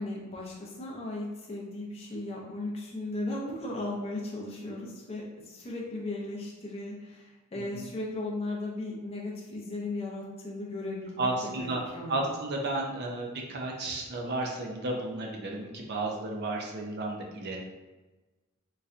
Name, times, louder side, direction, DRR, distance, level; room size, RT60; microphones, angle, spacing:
voice 1, 0.0-11.3 11.6-11.7 11.9-12.3, left 2 dB, 30° left, -3 dB, 0.5 m, -36 dB
voice 2, 7.6-7.9 11.2-11.8 12.1-17.6, right 2 dB, 50° right, 0 dB, 0.6 m, -33 dB
4.0 x 2.2 x 2.5 m, 1.2 s
head